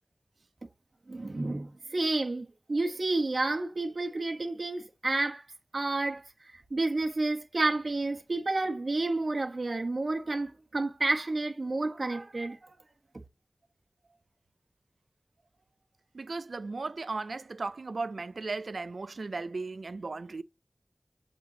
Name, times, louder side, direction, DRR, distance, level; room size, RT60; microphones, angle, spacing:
voice 1, 1.1-5.4 5.7-6.2 6.7-12.6, right 2 dB, 70° right, 1.3 m, -30 dB
voice 2, 16.1-20.4, right 3 dB, 85° right, 0.4 m, -36 dB
8.3 x 4.3 x 3.0 m
wide cardioid pair, 50°, 0 cm